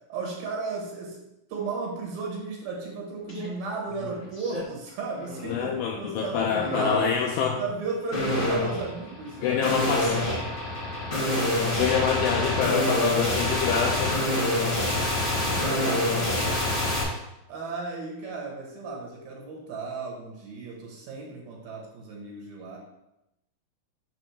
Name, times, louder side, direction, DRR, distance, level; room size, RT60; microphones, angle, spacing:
voice 1, 0.1-1.2 1.5-7.1 7.6-9.6 14.1-14.3 15.4-16.7 17.5-22.8, right 4 dB, 70° right, -1 dB, 2.8 m, -35 dB
sound 1, 3.3-3.5 3.9-4.6 5.1-5.5 6.6-7.2 8.1-17.0, left 1 dB, 40° left, 1.1 m, -27 dB
voice 2, 5.4-7.6 9.4-10.2 11.5-14.2, left 7 dB, 80° left, 0 dB, 2.4 m, -26 dB
6.7 x 3.5 x 6.2 m, 0.89 s
omnidirectional pair, 4.5 m